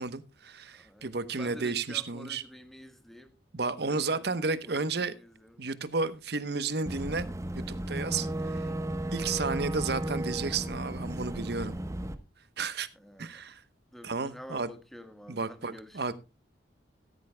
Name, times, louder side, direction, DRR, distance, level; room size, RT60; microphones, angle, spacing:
voice 1, 0.0-2.4 3.5-5.1 5.6-7.3 7.5-8.6 9.1-11.8 12.6-12.9 13.2-13.6 14.0-14.7 15.3-16.1, right 4 dB, 60° right, 1.0 m, -32 dB
voice 2, 0.7-4.4 4.6-5.6 8.5-8.8 12.9-13.4 13.9-16.1, equal, ahead, 1.4 m, -49 dB
Boat Water vehicle / Engine, 6.9-12.1, right 1 dB, 15° right, 1.0 m, -34 dB
15.0 x 13.5 x 2.2 m
head